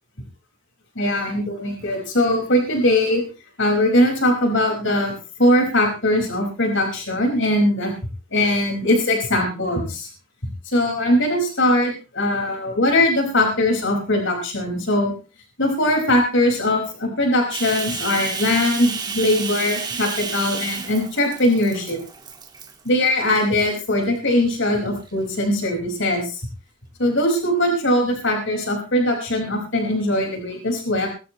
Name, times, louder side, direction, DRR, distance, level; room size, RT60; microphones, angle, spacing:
voice 1, 1.0-3.2 3.6-5.1 5.4-7.9 8.3-10.1 10.7-15.1 15.6-22.0 22.9-26.4 27.0-31.1, left 1 dB, 60° left, 2 dB, 5.2 m, -20 dB
Bathtub (filling or washing), 17.5-22.9 23.3-23.7 24.3-25.1, right 5 dB, 20° right, 1.8 m, -31 dB
21.5 x 14.0 x 3.1 m, 0.34 s
head